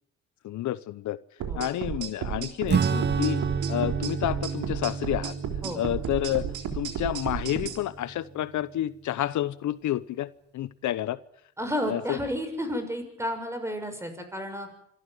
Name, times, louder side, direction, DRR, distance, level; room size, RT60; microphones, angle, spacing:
voice 1, 0.4-1.2 1.5-5.3 5.7-6.5 6.7-11.2 11.9-12.2, left 13 dB, 75° left, 16 dB, 0.9 m, -30 dB
sound 1, 1.4-7.8, right 8 dB, 80° right, 3.7 m, -33 dB
Acoustic guitar / Strum, 2.7-8.6, right 6 dB, 35° right, 0.8 m, -30 dB
voice 2, 11.6-14.7, equal, 10° right, 7 dB, 6.4 m, -31 dB
26.0 x 13.5 x 9.4 m, 0.72 s
cardioid pair, 90°, 30 cm